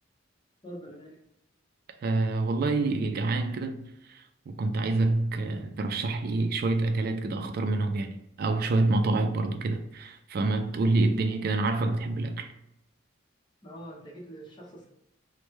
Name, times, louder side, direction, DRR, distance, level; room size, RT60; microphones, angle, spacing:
voice 1, 0.6-1.2 13.6-14.9, right 1 dB, 25° left, 0.8 m, -44 dB
voice 2, 2.0-12.5, right 2 dB, 50° right, 0.3 m, -27 dB
3.1 x 2.1 x 3.1 m
head